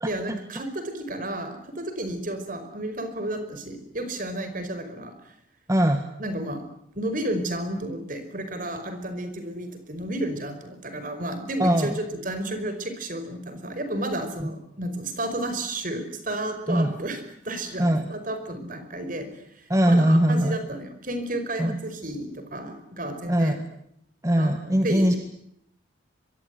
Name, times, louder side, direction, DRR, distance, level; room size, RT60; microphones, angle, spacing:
voice 1, 0.1-5.3 6.2-6.6 7.0-19.3 19.5-23.6 24.4-25.2, right 1 dB, 40° right, 9 dB, 5.1 m, -32 dB
voice 2, 5.7-6.0 11.6-12.0 14.4-14.5 16.7-16.9 17.8-18.1 19.7-20.6 21.6-21.8 23.3-23.6 24.2-25.2, right 1 dB, 15° right, 6 dB, 1.8 m, -21 dB
25.0 x 22.5 x 9.6 m, 0.74 s
head